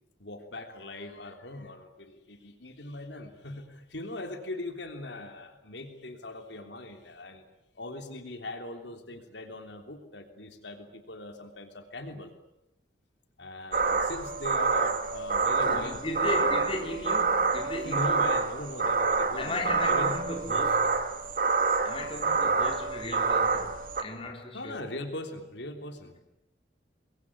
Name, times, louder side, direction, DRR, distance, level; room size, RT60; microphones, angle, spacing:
voice 1, 0.2-7.4 7.8-12.3 13.4-16.4 17.8-20.2 24.5-26.1, left 2 dB, 70° left, 3.3 m, -40 dB
sound 1, 13.7-24.0, right 4 dB, 45° right, 2.0 m, -27 dB
voice 2, 15.7-18.2 19.4-21.0 21.8-24.8, left 2 dB, 30° left, 3.6 m, -36 dB
26.0 x 21.5 x 9.8 m
head